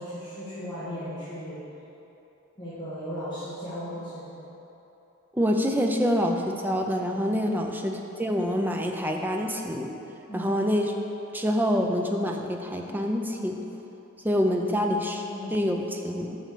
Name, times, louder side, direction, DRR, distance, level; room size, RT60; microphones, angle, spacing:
voice 1, 0.0-1.6 2.6-4.4 7.4-7.6 10.3-10.5 15.2-15.6, equal, 20° left, -13 dB, 1.7 m, -36 dB
voice 2, 5.3-9.9 10.3-11.0 11.3-13.7 14.2-15.2 15.5-16.4, equal, 10° right, 2 dB, 0.5 m, -26 dB
6.1 x 5.7 x 6.7 m, 3.0 s
head